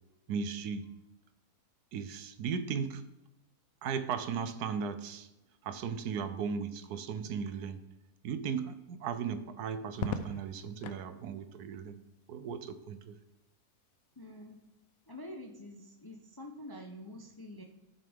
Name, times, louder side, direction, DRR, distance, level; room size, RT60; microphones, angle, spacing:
voice 1, 0.3-0.9 1.9-3.1 3.8-5.3 5.6-7.8 8.2-12.0 12.3-13.2, right 6 dB, 80° right, 11 dB, 1.2 m, -36 dB
Crackle, 9.9-11.1 12.7-13.2, left 5 dB, 65° left, 1.0 m, -39 dB
voice 2, 14.2-14.6 15.1-17.6, left 1 dB, 25° left, 2 dB, 0.5 m, -47 dB
12.0 x 6.7 x 3.5 m, 0.93 s
omnidirectional pair, 1.7 m